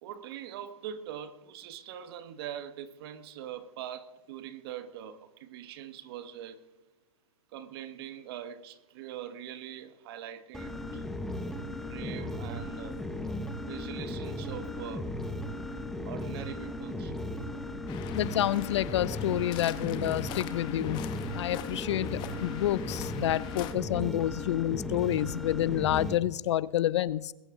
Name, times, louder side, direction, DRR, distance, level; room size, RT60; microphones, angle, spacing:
voice 1, 0.0-6.7 7.5-11.0 11.7-13.0 13.7-15.1 16.1-17.1, right 10 dB, 45° right, 1.1 m, -42 dB
sound 1, 10.5-26.2, left 1 dB, ahead, 0.8 m, -36 dB
Waves surf, 17.9-23.7, left 12 dB, 25° left, 1.0 m, -42 dB
voice 2, 18.1-21.0 21.3-27.3, left 13 dB, 55° left, 0.4 m, -29 dB
21.0 x 11.0 x 3.7 m
hypercardioid pair, 150°, 18 cm